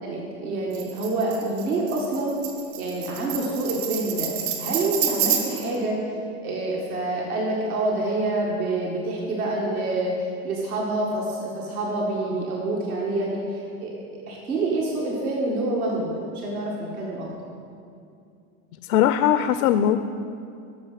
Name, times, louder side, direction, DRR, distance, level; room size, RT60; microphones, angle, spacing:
voice 1, 0.0-2.4 2.8-4.3 4.6-6.2 6.4-10.1 10.4-13.9 14.3-17.3, right 2 dB, 85° right, -3 dB, 2.0 m, -27 dB
Tambourine, 0.7-5.8, right 8 dB, 70° right, 1.8 m, -29 dB
voice 2, 18.9-20.0, left 10 dB, 80° left, 10 dB, 0.6 m, -19 dB
13.5 x 6.4 x 5.7 m, 2.5 s
hypercardioid pair, 100°, 43 cm